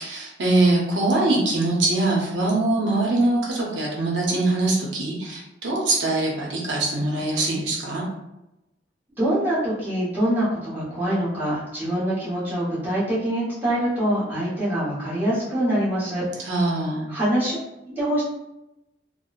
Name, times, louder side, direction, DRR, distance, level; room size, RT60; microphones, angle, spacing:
voice 1, 0.0-8.0 16.4-17.1, right 2 dB, 85° right, -3 dB, 0.7 m, -23 dB
voice 2, 9.2-16.3 17.1-17.6 17.9-18.2, right 1 dB, 10° right, -10 dB, 1.0 m, -24 dB
2.9 x 2.0 x 2.4 m, 0.92 s
head